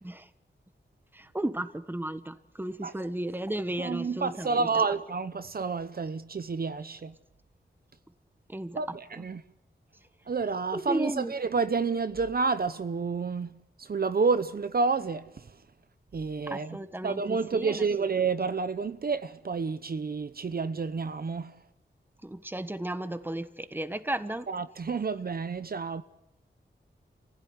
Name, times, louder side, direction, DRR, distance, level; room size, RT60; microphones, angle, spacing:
voice 1, 1.1-4.7 8.5-8.8 9.2-9.3 10.7-11.3 16.5-17.8 22.2-24.5, right 1 dB, 10° right, 1.3 m, -34 dB
voice 2, 3.8-7.1 8.8-9.4 10.3-15.5 16.1-16.8 17.0-21.5 24.5-26.0, right 4 dB, 55° right, 0.8 m, -29 dB
29.0 x 16.0 x 9.7 m
wide cardioid pair, 105°, 19 cm